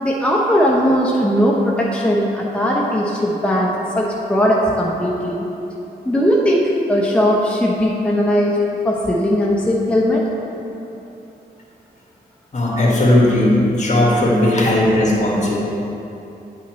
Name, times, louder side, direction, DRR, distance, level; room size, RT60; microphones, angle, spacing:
voice 1, 0.0-5.5 6.0-8.6 8.8-10.3, equal, 5° left, -4 dB, 0.8 m, -18 dB
voice 2, 12.5-15.6, left 1 dB, 45° left, -4 dB, 1.8 m, -16 dB
10.0 x 5.7 x 3.1 m, 2.9 s
cardioid pair, 75°, 17 cm